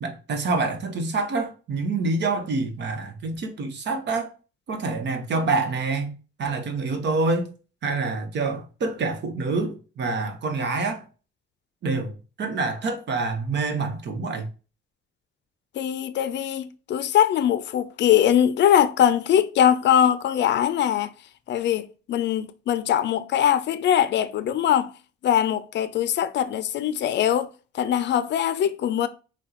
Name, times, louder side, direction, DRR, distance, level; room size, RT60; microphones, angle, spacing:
voice 1, 0.0-4.3 4.7-6.1 6.4-7.5 7.8-11.0 11.8-14.5, right 3 dB, 60° right, 1.0 m, -26 dB
voice 2, 15.7-21.1 21.5-24.9 25.2-29.1, left 10 dB, 65° left, 0.4 m, -22 dB
6.0 x 2.3 x 2.9 m
cardioid pair, 90°, 20 cm